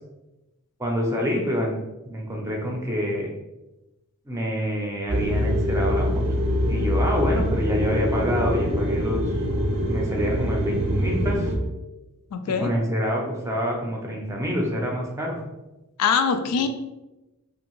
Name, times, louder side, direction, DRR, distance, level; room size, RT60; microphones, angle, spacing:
voice 1, 0.8-1.7 2.0-3.3 4.3-6.2 6.7-9.2 9.9-11.5 12.5-15.4 16.5-16.7, equal, 15° right, 0 dB, 0.5 m, -27 dB
sound 1, 5.1-11.6, equal, 85° right, 0.7 m, -24 dB
voice 2, 12.3-12.7 16.0-16.7, left 6 dB, 85° left, 7 dB, 0.3 m, -22 dB
2.7 x 2.5 x 2.9 m, 1.0 s
head